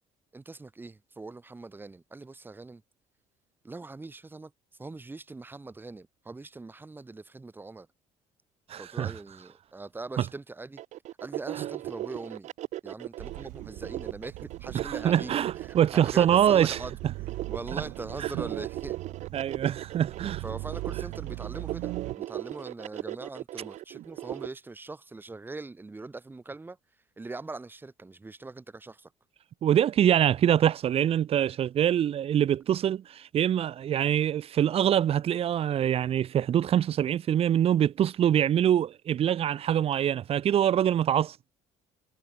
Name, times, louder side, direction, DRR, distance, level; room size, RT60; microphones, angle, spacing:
voice 1, 0.3-2.8 3.6-4.5 4.8-7.9 8.7-10.8 11.2-12.5 12.8-17.0 17.5-19.0 20.4-26.8 27.2-29.1, right 3 dB, 15° right, 5.7 m, -41 dB
voice 2, 8.7-9.1 14.7-16.8 19.3-20.4 29.6-41.3, right 10 dB, 50° right, 1.7 m, -24 dB
sound 1, 10.8-24.5, right 14 dB, 65° right, 2.0 m, -37 dB
sound 2, 13.2-22.2, right 22 dB, 90° right, 1.3 m, -40 dB
cardioid pair, 120°, 13 cm